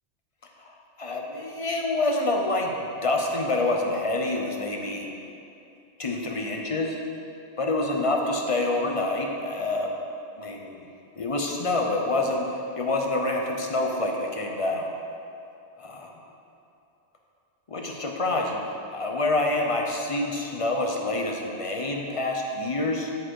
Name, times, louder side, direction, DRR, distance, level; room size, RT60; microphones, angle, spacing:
voice 1, 0.7-5.1 6.0-7.0 7.6-9.9 10.4-10.9 11.2-14.9 15.8-16.1 17.7-18.7 18.9-23.1, left 2 dB, 35° left, 1 dB, 0.6 m, -27 dB
10.5 x 4.3 x 4.7 m, 2.7 s
omnidirectional pair, 1.2 m